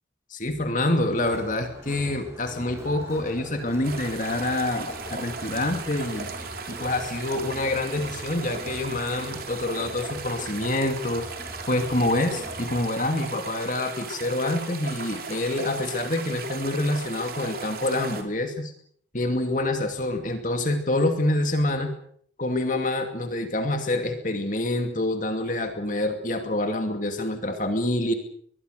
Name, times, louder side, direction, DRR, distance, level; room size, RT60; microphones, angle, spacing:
voice 1, 0.3-6.3 6.7-11.3 11.7-18.7 19.1-21.9 22.4-28.1, left 1 dB, 45° left, 6 dB, 2.5 m, -26 dB
Crowd, 1.1-12.9, right 1 dB, 15° right, 5.7 m, -42 dB
sound 1, 3.8-18.2, right 4 dB, 50° right, 3.5 m, -37 dB
22.5 x 21.5 x 6.7 m, 0.64 s
head